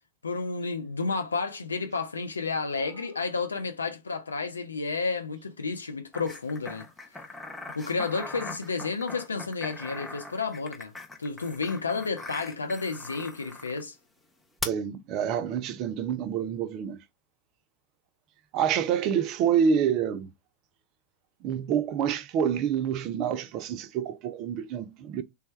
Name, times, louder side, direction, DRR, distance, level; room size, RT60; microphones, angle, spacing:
voice 1, 0.2-6.9 7.8-10.9 11.2-14.0, left 4 dB, 75° left, 0.4 m, -31 dB
sound 1, 6.1-13.8 14.6-14.7, left 2 dB, 5° left, 0.6 m, -40 dB
voice 2, 14.6-17.0 18.5-20.3 21.4-25.2, right 8 dB, 40° right, 0.4 m, -27 dB
3.3 x 2.2 x 3.0 m
figure-of-eight pair, 90°, 0 cm